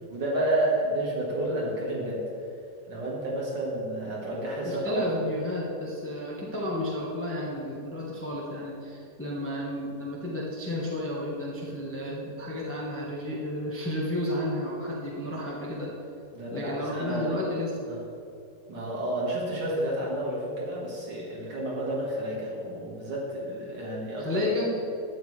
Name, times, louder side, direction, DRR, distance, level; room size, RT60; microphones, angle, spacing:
voice 1, 0.1-2.2 2.9-5.0 16.3-17.4 17.9-18.0 18.7-24.4, right 1 dB, 80° right, -5 dB, 2.5 m, -30 dB
voice 2, 4.6-15.9 16.5-17.8 24.2-24.7, left 1 dB, 10° left, -4 dB, 1.0 m, -32 dB
11.5 x 9.1 x 3.3 m, 2.7 s
omnidirectional pair, 1.9 m